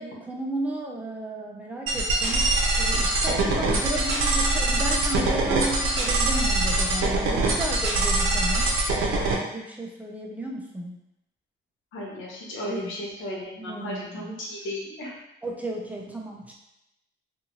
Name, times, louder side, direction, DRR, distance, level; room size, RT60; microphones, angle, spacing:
voice 1, 0.0-8.7 9.2-11.0 12.7-12.9 13.7-14.3 15.4-16.5, right 1 dB, 5° right, -1 dB, 0.6 m, -34 dB
sound 1, 1.9-9.4, right 2 dB, 80° right, 0.6 m, -23 dB
voice 2, 11.9-15.1, left 1 dB, 85° left, -3 dB, 1.0 m, -35 dB
2.7 x 2.6 x 2.9 m, 0.88 s
cardioid pair, 90°, 20 cm